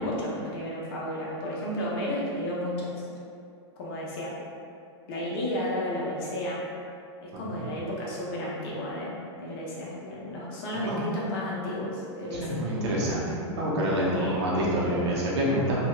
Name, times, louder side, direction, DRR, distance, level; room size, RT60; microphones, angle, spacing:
voice 1, 0.0-3.1 3.8-4.3 5.1-6.6 7.2-9.1 9.4-12.5 14.1-14.4, left 1 dB, 50° left, -5 dB, 0.9 m, -32 dB
voice 2, 12.3-15.9, equal, 65° right, -5 dB, 0.9 m, -27 dB
2.9 x 2.8 x 2.3 m, 2.4 s
hypercardioid pair, 115°, 15 cm